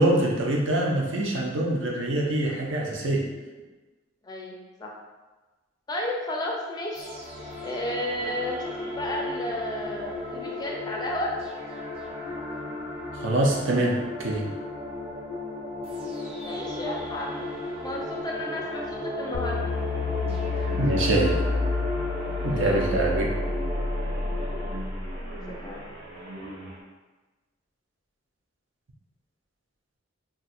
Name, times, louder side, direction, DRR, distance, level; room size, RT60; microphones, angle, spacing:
voice 1, 0.0-3.2 13.1-14.5 20.8-21.4 22.4-23.3, right 1 dB, 70° right, -1 dB, 0.6 m, -24 dB
voice 2, 4.2-4.9 5.9-7.1 7.6-11.3 16.4-17.5 17.8-19.6 22.3-23.0 25.6-25.8, left 1 dB, 20° left, -1 dB, 0.3 m, -33 dB
sound 1, 6.9-24.7, left 2 dB, 30° right, 0.8 m, -35 dB
sound 2, 19.3-25.6, left 2 dB, 80° left, 0.4 m, -30 dB
sound 3, 19.4-26.8, right 1 dB, 85° right, 1.1 m, -41 dB
2.5 x 2.3 x 4.1 m, 1.2 s
head